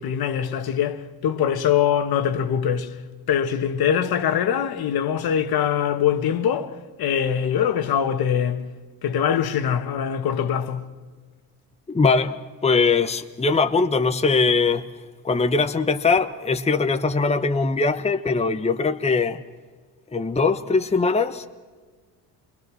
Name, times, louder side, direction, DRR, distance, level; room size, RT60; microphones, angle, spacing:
voice 1, 0.0-3.0 3.3-8.7 9.0-10.9, left 8 dB, 60° left, 1.6 m, -23 dB
voice 2, 11.9-14.8 15.2-19.4 20.1-21.5, left 4 dB, 15° left, 1.0 m, -21 dB
27.5 x 21.5 x 6.3 m
supercardioid pair, 85°, 41 cm